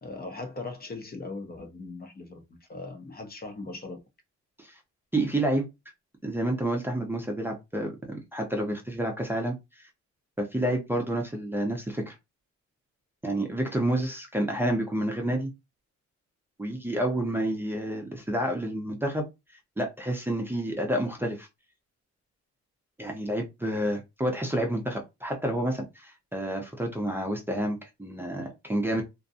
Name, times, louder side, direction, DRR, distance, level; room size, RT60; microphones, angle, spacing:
voice 1, 0.0-2.4 2.7-4.0, left 3 dB, 30° left, 0.8 m, -39 dB
voice 2, 5.1-5.7 6.2-9.9 10.4-12.2 13.2-15.5 16.6-19.2 19.8-21.5 23.0-29.0, right 1 dB, 5° right, 0.7 m, -29 dB
2.6 x 2.2 x 2.6 m
cardioid pair, 90°, 30 cm